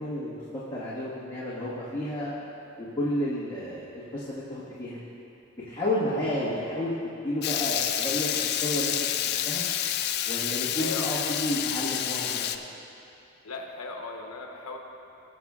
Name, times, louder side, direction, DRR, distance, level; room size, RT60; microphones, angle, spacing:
voice 1, 0.0-2.3 2.8-5.0 5.7-6.9 7.2-8.9 9.4-9.6 10.2-12.4, left 1 dB, 20° left, -11 dB, 1.5 m, -31 dB
Water tap faucet / Liquid, 7.4-12.6, left 10 dB, 45° left, 0.4 m, -29 dB
voice 2, 10.8-11.3 13.4-14.8, left 3 dB, 80° left, 2 dB, 1.0 m, -37 dB
19.0 x 7.7 x 2.4 m, 2.8 s
head